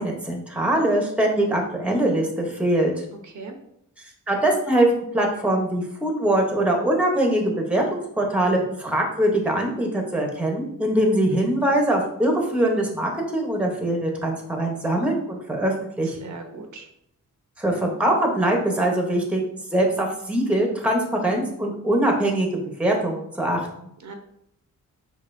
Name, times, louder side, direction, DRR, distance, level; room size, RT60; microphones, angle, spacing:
voice 1, 0.0-2.9 4.3-16.3 17.6-19.4 19.7-22.5 22.8-23.9, right 1 dB, 5° right, 1 dB, 0.8 m, -22 dB
voice 2, 3.2-3.6 16.2-16.9 24.0-24.1, right 3 dB, 65° right, 4 dB, 0.7 m, -38 dB
6.5 x 2.7 x 2.6 m, 0.73 s
wide cardioid pair, 115°, 32 cm